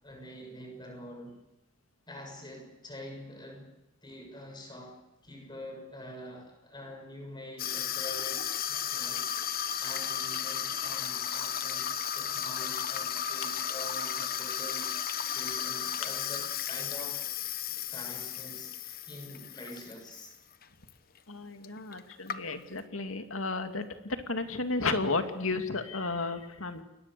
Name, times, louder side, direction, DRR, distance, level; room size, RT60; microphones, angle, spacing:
voice 1, 0.0-1.4 2.1-3.7 4.0-17.2 17.9-20.4, equal, 20° left, 3 dB, 7.1 m, -46 dB
Water tap faucet / Sink (filling or washing), 7.6-20.3 20.6-20.9 21.6-21.7 21.9-22.8, left 9 dB, 45° left, 1.1 m, -34 dB
voice 2, 21.3-26.8, left 3 dB, 90° left, 7 dB, 2.4 m, -33 dB
30.0 x 22.0 x 6.9 m, 0.90 s
head